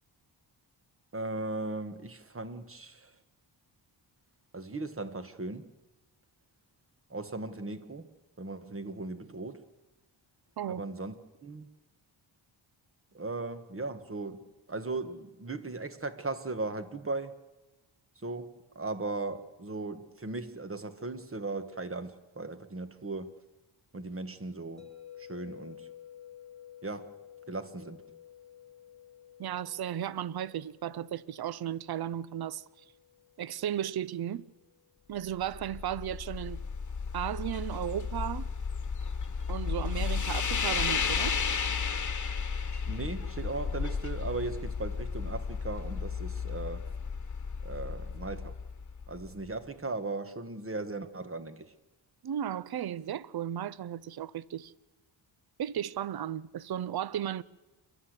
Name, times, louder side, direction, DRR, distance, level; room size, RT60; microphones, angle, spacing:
voice 1, 1.1-3.1 4.5-5.7 7.1-8.1 8.4-9.6 10.7-11.2 11.4-11.7 13.1-17.3 18.2-23.3 23.9-24.9 25.2-25.9 26.8-27.1 27.5-28.0 42.9-46.8 47.6-48.5 49.1-51.7, right 3 dB, 30° right, 1.4 m, -37 dB
sound 1, 24.8-34.9, left 10 dB, ahead, 2.2 m, -53 dB
voice 2, 29.4-32.6 33.4-34.4 35.1-36.6 37.1-38.5 39.5-41.4 52.2-54.7 55.6-57.4, right 10 dB, 55° right, 0.6 m, -35 dB
sound 2, 35.3-49.5, left 6 dB, 40° left, 1.3 m, -33 dB
28.5 x 12.0 x 8.1 m
wide cardioid pair, 95°, 47 cm